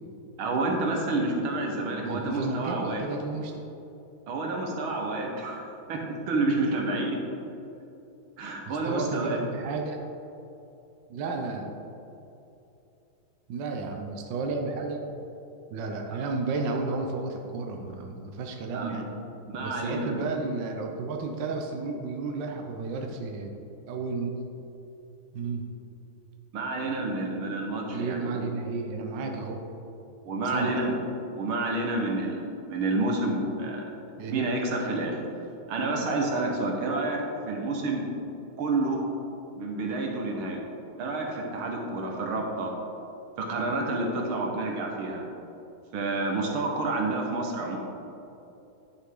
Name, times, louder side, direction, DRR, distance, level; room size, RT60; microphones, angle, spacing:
voice 1, 0.4-3.0 4.3-7.2 8.4-9.4 16.1-16.2 18.7-19.0 19.5-20.2 26.5-28.5 30.2-31.0 31.3-33.8 34.3-35.2 35.7-37.2 37.5-38.1 38.6-39.0 39.6-40.6 41.0-42.7 43.4-45.2 45.9-47.8, right 2 dB, 85° right, 1 dB, 2.0 m, -29 dB
voice 2, 2.0-3.5 8.7-10.1 11.1-11.8 13.5-15.1 15.7-19.1 19.6-23.5 23.9-24.4 25.3-25.6 27.9-29.6 30.5-30.7 34.2-34.5, right 3 dB, 65° right, 2 dB, 1.4 m, -32 dB
10.5 x 7.0 x 3.8 m, 2.8 s
omnidirectional pair, 2.2 m